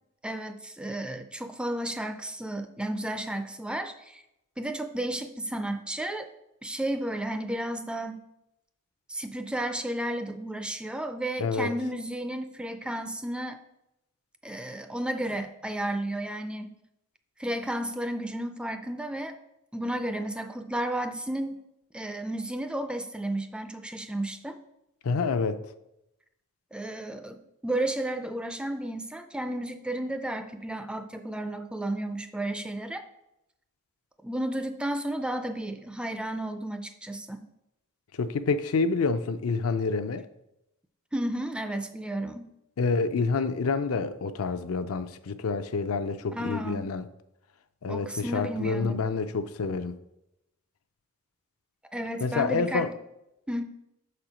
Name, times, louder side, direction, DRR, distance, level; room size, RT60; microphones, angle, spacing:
voice 1, 0.2-4.2 4.6-6.3 6.6-8.2 9.1-13.6 14.4-16.7 17.4-19.4 19.7-21.6 21.9-24.6 26.7-33.0 34.2-37.4 41.1-42.5 46.3-46.9 47.9-48.9 51.9-52.9 53.5-53.6, right 1 dB, 5° right, 8 dB, 0.3 m, -32 dB
voice 2, 11.4-11.7 25.0-25.6 38.1-40.3 42.8-47.1 47.8-49.9 52.2-52.9, left 4 dB, 70° left, 10 dB, 0.5 m, -28 dB
6.2 x 4.5 x 5.0 m, 0.85 s
head